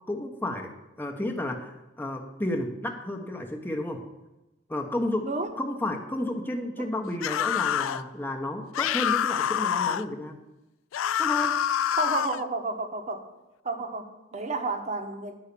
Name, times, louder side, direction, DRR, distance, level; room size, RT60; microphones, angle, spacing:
voice 1, 0.1-4.0 4.7-5.3 5.5-10.4 11.2-11.5, left 1 dB, 10° left, 2 dB, 1.0 m, -32 dB
sound 1, 7.2-8.0 8.7-10.1 10.9-12.4, left 9 dB, 75° left, 0.4 m, -26 dB
voice 2, 11.9-13.2 13.6-15.4, right 3 dB, 35° right, 6 dB, 1.1 m, -31 dB
11.0 x 5.6 x 8.4 m, 1.0 s
head